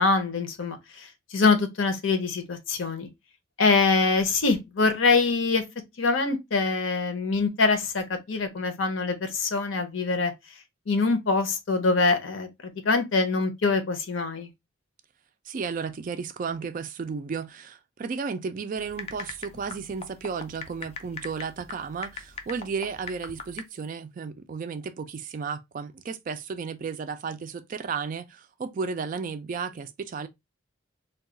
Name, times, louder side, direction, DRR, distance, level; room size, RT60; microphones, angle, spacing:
voice 1, 0.0-3.1 3.6-5.6 6.0-10.3 10.9-12.5 12.8-14.5, left 4 dB, 70° left, 0.7 m, -24 dB
voice 2, 15.5-30.3, right 5 dB, 40° right, 0.3 m, -33 dB
sound 1, 18.8-23.6, left 4 dB, 30° left, 0.4 m, -41 dB
2.3 x 2.3 x 3.6 m
head